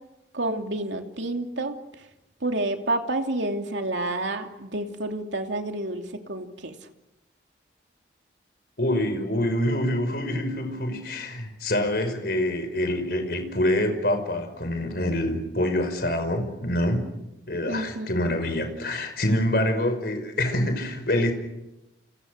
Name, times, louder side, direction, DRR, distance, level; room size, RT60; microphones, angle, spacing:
voice 1, 0.3-1.8 2.4-6.0 6.3-6.7 17.7-18.1, right 2 dB, 85° right, 4 dB, 2.9 m, -29 dB
voice 2, 8.8-17.1 17.5-21.3, left 1 dB, 55° left, 7 dB, 5.6 m, -26 dB
29.5 x 28.0 x 6.6 m, 0.95 s
head